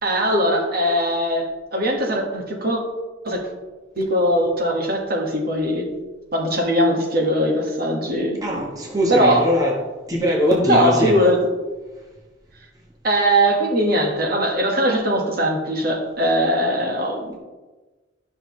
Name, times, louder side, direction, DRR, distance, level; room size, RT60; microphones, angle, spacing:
voice 1, 0.0-1.5 1.7-2.8 3.2-3.5 4.0-5.8 6.3-8.4 9.1-9.4 10.6-11.4 13.0-17.4, equal, 55° right, 0 dB, 1.6 m, -20 dB
voice 2, 8.4-9.8 10.1-11.2, equal, 20° right, -2 dB, 1.2 m, -21 dB
12.0 x 6.3 x 3.2 m, 1.2 s
head